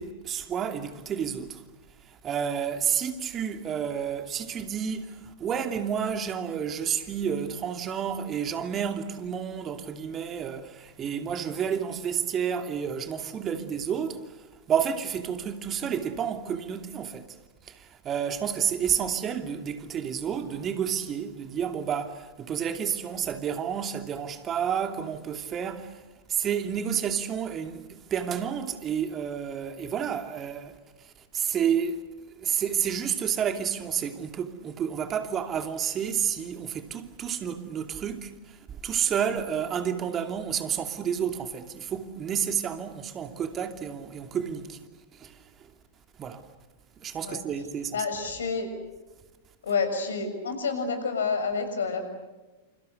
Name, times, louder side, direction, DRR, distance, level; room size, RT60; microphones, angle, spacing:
voice 1, 0.0-1.6 2.0-17.3 17.6-26.0 26.3-32.0 32.4-44.8 45.1-45.7 46.2-46.4 47.0-48.0, right 8 dB, 30° right, 2.7 m, -30 dB
voice 2, 47.9-48.7 49.6-52.0, left 5 dB, 70° left, 6.7 m, -29 dB
29.0 x 28.5 x 6.7 m
figure-of-eight pair, 95°, 0 cm